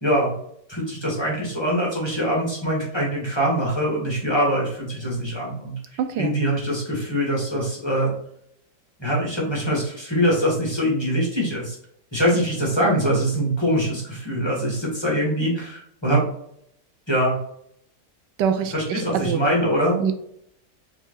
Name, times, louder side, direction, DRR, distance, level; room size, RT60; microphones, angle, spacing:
voice 1, 0.0-0.3 0.7-8.1 9.0-11.8 12.1-16.2 17.1-17.4 18.7-20.0, equal, 15° left, -4 dB, 1.7 m, -23 dB
voice 2, 6.0-6.4 18.4-19.4 20.0-20.1, right 7 dB, 80° right, 8 dB, 1.2 m, -24 dB
4.8 x 4.0 x 2.5 m, 0.71 s
omnidirectional pair, 1.9 m